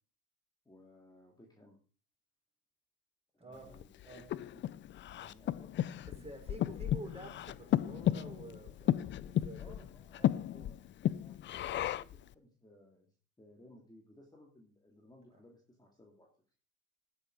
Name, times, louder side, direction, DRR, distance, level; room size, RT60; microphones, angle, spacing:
voice 1, 0.6-1.8 3.3-3.9 4.1-4.6 5.2-6.6 9.6-16.3, left 1 dB, 10° left, 0 dB, 2.9 m, -60 dB
voice 2, 3.4-3.7 4.0-4.3 6.2-9.8 10.2-10.8, right 2 dB, 15° right, 3 dB, 5.3 m, -50 dB
Breathing, 3.7-12.2, left 12 dB, 25° left, 0.5 m, -34 dB
12.5 x 9.9 x 4.9 m, 0.40 s
hypercardioid pair, 90°, 44 cm